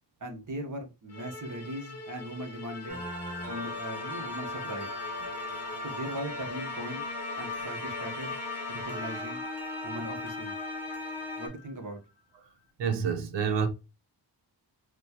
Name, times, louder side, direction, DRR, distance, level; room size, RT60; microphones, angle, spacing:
voice 1, 0.2-3.0 3.5-4.9 5.8-7.0 7.4-8.3 8.7-9.4 9.8-10.6 11.4-12.0, right 1 dB, 50° right, 1.0 m, -39 dB
Musical instrument, 1.1-9.6, left 3 dB, 40° left, 0.6 m, -44 dB
sound 1, 2.7-11.9, left 4 dB, 75° left, 0.8 m, -45 dB
sound 2, 2.9-11.5, left 2 dB, 5° right, 1.3 m, -38 dB
voice 2, 12.8-13.7, right 6 dB, 90° right, 0.7 m, -28 dB
4.1 x 2.2 x 2.8 m
cardioid pair, 90°, 42 cm